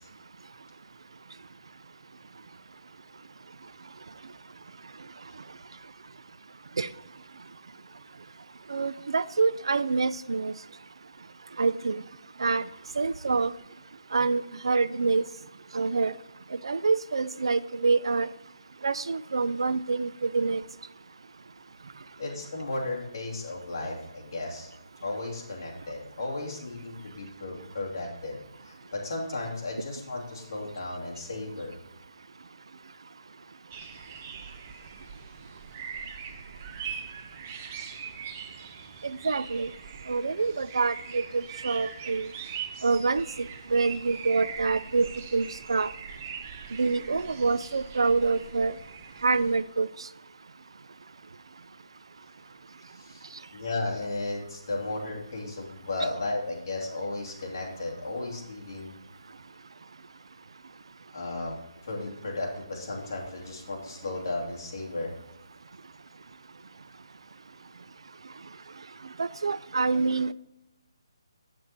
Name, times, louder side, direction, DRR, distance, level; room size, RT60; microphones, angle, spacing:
voice 1, 8.7-10.5 11.6-12.0 12.4-12.6 13.0-13.5 14.1-15.2 15.7-16.1 16.6-18.3 18.8-20.6 39.2-39.7 40.1-42.3 42.8-45.9 46.7-48.7 49.2-49.9 69.2-70.3, right 4 dB, 70° right, 16 dB, 0.4 m, -26 dB
voice 2, 22.2-24.7 25.0-28.4 28.6-31.7 52.9-53.2 53.5-58.9 61.1-61.5 61.8-65.1, left 2 dB, 40° left, -2 dB, 2.6 m, -34 dB
sound 1, 33.7-49.6, right 7 dB, 20° right, 0.5 m, -42 dB
8.3 x 7.6 x 4.2 m, 0.88 s
hypercardioid pair, 175°, 3 cm